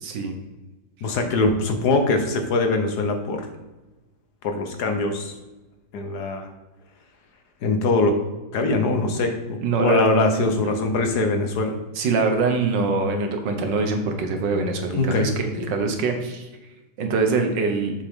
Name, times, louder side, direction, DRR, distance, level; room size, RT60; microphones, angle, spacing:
voice 1, 0.0-0.3 9.6-10.1 10.6-10.7 12.0-16.5 17.0-17.9, right 4 dB, 80° right, 5 dB, 1.8 m, -23 dB
voice 2, 1.0-3.5 4.4-5.3 5.9-6.5 7.6-8.2 8.5-11.8 14.9-15.7, left 3 dB, 65° left, 5 dB, 1.5 m, -22 dB
7.2 x 7.2 x 3.7 m, 1.1 s
omnidirectional pair, 1.9 m